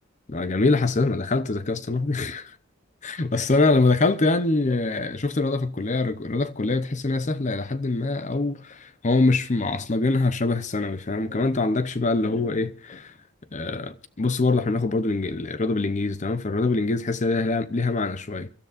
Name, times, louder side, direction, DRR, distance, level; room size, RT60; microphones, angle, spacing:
voice 1, 0.3-2.5 3.0-13.1 13.5-18.5, left 3 dB, 35° left, 0.7 m, -24 dB
29.5 x 13.5 x 2.5 m
head